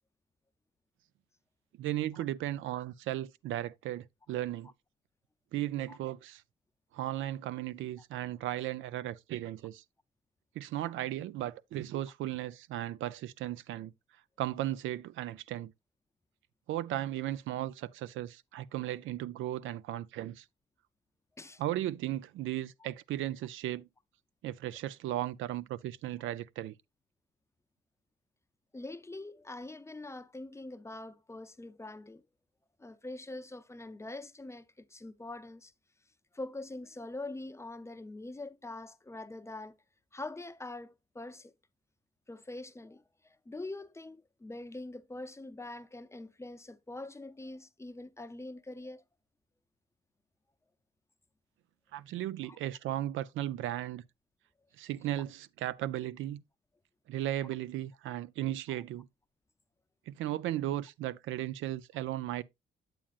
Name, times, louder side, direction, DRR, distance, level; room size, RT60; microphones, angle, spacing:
voice 1, 1.8-4.7 5.5-6.4 6.9-9.8 10.6-13.9 14.4-15.7 16.7-20.5 21.6-23.9 24.4-26.8 51.9-54.0 54.8-56.4 57.1-59.1 60.1-62.4, right 13 dB, 80° right, 0.4 m, -36 dB
voice 2, 28.7-32.2 32.8-35.7 36.3-39.8 40.1-41.5 42.3-49.0 52.4-52.6 58.7-58.8, left 2 dB, 15° left, 0.5 m, -44 dB
8.7 x 7.4 x 2.4 m
cardioid pair, 90°, 20 cm